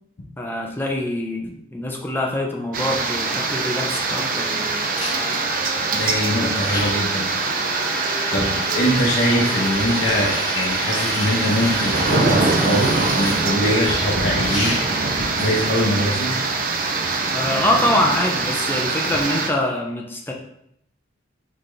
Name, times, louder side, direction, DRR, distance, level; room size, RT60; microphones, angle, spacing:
voice 1, 0.4-4.6 17.3-20.3, left 1 dB, 10° left, 0 dB, 0.5 m, -24 dB
sound 1, 2.7-19.5, right 3 dB, 50° right, 0.5 m, -23 dB
sound 2, 4.3-8.9 9.4-14.4, right 2 dB, 30° right, 1.7 m, -40 dB
sound 3, 4.9-5.1 6.1-6.2 6.7-13.4 13.8-15.1 15.8-15.9, left 2 dB, 45° left, 1.6 m, -30 dB
voice 2, 5.9-7.4 8.3-14.8 15.1-16.3, equal, 65° left, -4 dB, 0.9 m, -22 dB
4.1 x 3.6 x 3.3 m, 0.75 s
head